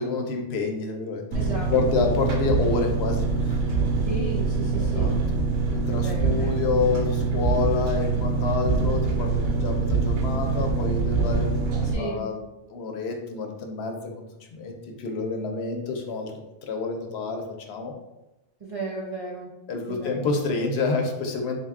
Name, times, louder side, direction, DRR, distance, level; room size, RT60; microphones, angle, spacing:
voice 1, 0.0-1.2 1.7-3.6 4.8-5.1 5.7-11.7 12.0-12.4 12.7-14.0 14.5-14.7 15.0-16.3 16.6-17.9 19.7-21.6, left 4 dB, 70° left, 3 dB, 0.8 m, -28 dB
voice 2, 1.3-1.7 4.1-5.2 5.9-6.6 11.8-12.2 18.6-19.5 19.9-20.3, right 3 dB, 55° right, -4 dB, 0.3 m, -34 dB
Engine, 1.3-11.9, right 4 dB, 80° right, 0.9 m, -24 dB
3.9 x 2.1 x 3.5 m, 0.97 s
omnidirectional pair, 1.2 m